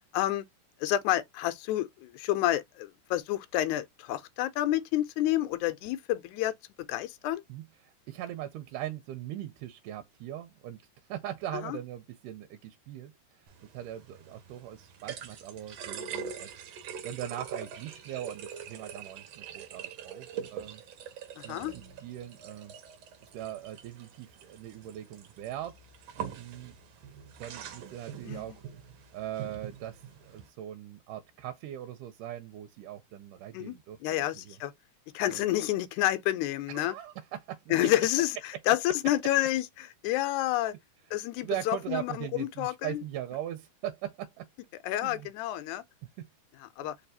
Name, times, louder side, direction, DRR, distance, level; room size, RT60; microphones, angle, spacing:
voice 1, 0.1-0.4 0.8-6.6 6.9-7.4 11.5-11.8 21.4-21.7 28.2-28.4 33.5-33.7 34.0-34.7 35.1-37.0 37.7-40.7 41.1-43.0 44.8-45.8 46.8-47.0, left 14 dB, 80° left, 1.9 m, -29 dB
voice 2, 7.5-10.8 11.1-16.5 17.0-20.8 21.4-22.7 23.3-25.8 26.4-26.7 27.4-28.6 29.1-34.6 35.3-35.5 36.7-38.1 41.4-44.5 45.0-45.3 46.2-46.3 46.8-46.9, right 12 dB, 90° right, 2.2 m, -40 dB
sound 1, 13.5-30.5, right 8 dB, 65° right, 1.8 m, -44 dB
4.6 x 3.3 x 2.7 m
omnidirectional pair, 3.7 m